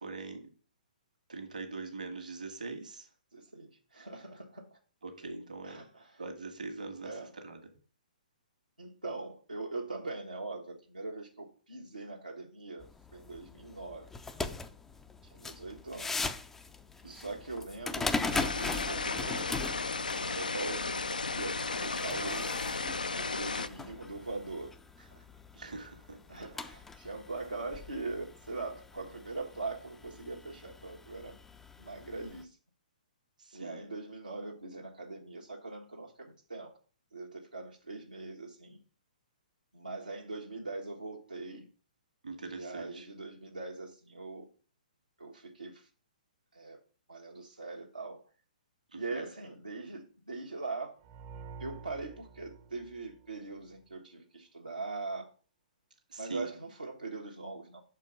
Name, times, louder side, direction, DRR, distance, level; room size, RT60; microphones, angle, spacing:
voice 1, 0.0-0.5 1.3-3.1 5.0-5.8 6.2-7.1 7.4-7.6 17.0-17.3 25.5-26.2 33.4-33.8 42.2-43.1 48.9-49.3 56.1-56.5, right 3 dB, 65° right, 5 dB, 1.5 m, -42 dB
voice 2, 3.3-4.8 5.6-6.2 7.0-7.3 8.8-14.1 15.2-16.2 17.0-19.5 20.1-22.6 23.2-24.7 25.0-25.2 26.3-31.4 31.8-32.6 33.5-36.7 37.1-38.8 39.7-41.7 42.5-44.5 45.2-45.9 46.5-46.8 47.1-48.2 48.9-50.9 51.6-55.3 56.2-57.8, right 3 dB, 85° right, -2 dB, 1.2 m, -41 dB
sound 1, 12.8-32.4, left 3 dB, 5° left, 0.4 m, -41 dB
sound 2, 18.3-23.7, left 4 dB, 75° left, 0.4 m, -34 dB
sound 3, 51.0-53.8, right 5 dB, 35° right, 0.7 m, -49 dB
5.8 x 4.6 x 4.9 m, 0.38 s
figure-of-eight pair, 120°, 5 cm